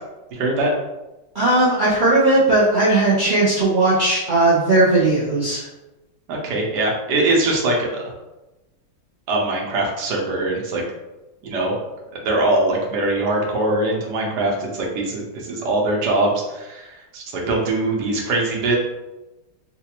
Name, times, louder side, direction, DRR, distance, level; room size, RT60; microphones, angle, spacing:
voice 1, 0.3-0.7 6.3-8.0 9.3-10.8 11.4-11.7 12.1-18.8, right 2 dB, 65° right, -1 dB, 1.3 m, -22 dB
voice 2, 1.3-5.7, right 2 dB, 85° right, -9 dB, 0.4 m, -17 dB
4.0 x 2.4 x 2.9 m, 1.0 s
omnidirectional pair, 2.1 m